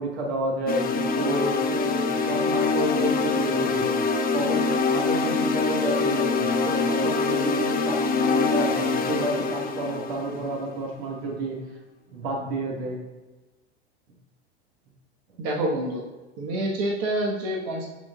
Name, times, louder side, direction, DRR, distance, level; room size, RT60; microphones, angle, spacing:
voice 1, 0.0-4.0 4.3-11.6 12.1-13.0, right 2 dB, 70° right, -1 dB, 1.4 m, -30 dB
sound 1, 0.7-10.8, left 4 dB, 25° left, 0.7 m, -24 dB
voice 2, 15.4-16.0 16.4-17.9, right 1 dB, 50° right, -1 dB, 1.4 m, -27 dB
12.0 x 4.1 x 2.4 m, 1.2 s
hypercardioid pair, 85°, 34 cm